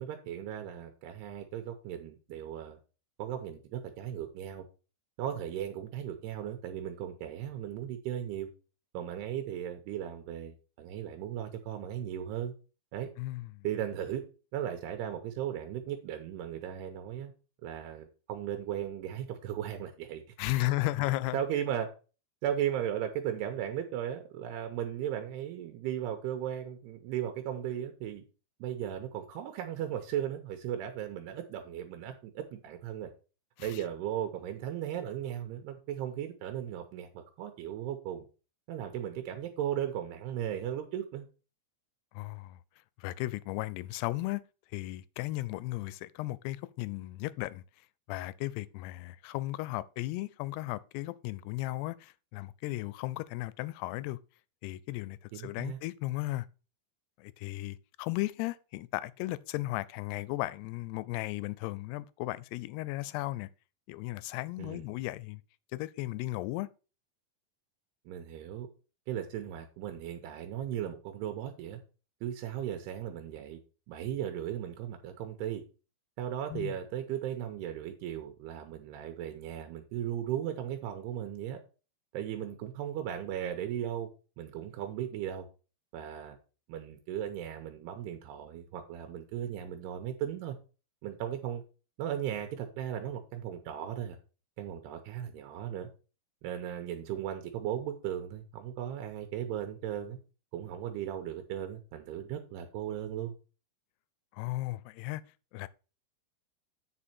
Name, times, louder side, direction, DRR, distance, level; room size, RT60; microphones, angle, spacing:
voice 1, 0.0-2.8 3.2-4.6 5.2-8.5 8.9-12.5 12.9-13.1 13.6-14.2 14.5-17.3 17.6-20.7 21.3-21.9 22.4-28.2 28.6-33.1 33.6-38.3 38.7-41.3 55.3-55.8 64.6-64.9 68.1-68.7 69.1-71.8 72.2-73.6 73.9-75.6 76.2-81.6 82.1-84.1 84.4-85.5 85.9-86.4 86.7-90.6 91.0-91.6 92.0-94.2 94.6-95.9 96.4-100.2 100.5-103.3, right 10 dB, 85° right, 2.9 m, -36 dB
voice 2, 13.2-13.7 20.4-21.4 33.6-33.8 42.1-42.6 43.0-44.4 44.7-47.6 48.1-54.2 54.6-56.5 57.2-63.5 63.9-65.4 65.7-66.7 76.5-76.7 104.3-105.2 105.5-105.7, left 18 dB, 85° left, 2.6 m, -35 dB
8.5 x 5.4 x 4.4 m
omnidirectional pair, 4.7 m